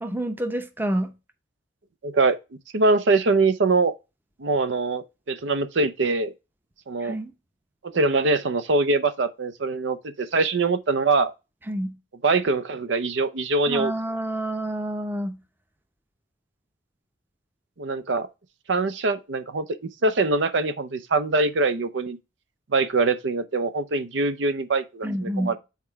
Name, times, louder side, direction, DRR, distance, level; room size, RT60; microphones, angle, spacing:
voice 1, 0.0-1.1 7.0-7.3 11.7-12.0 13.7-15.4 25.0-25.6, right 1 dB, 10° right, 0.7 m, -28 dB
voice 2, 2.0-2.4 2.7-3.9 4.4-6.3 6.9-7.1 7.8-11.3 12.2-13.9 17.8-18.3 18.7-19.6 20.0-22.2 22.7-25.6, right 3 dB, 70° right, 0.6 m, -23 dB
5.8 x 4.4 x 4.5 m
head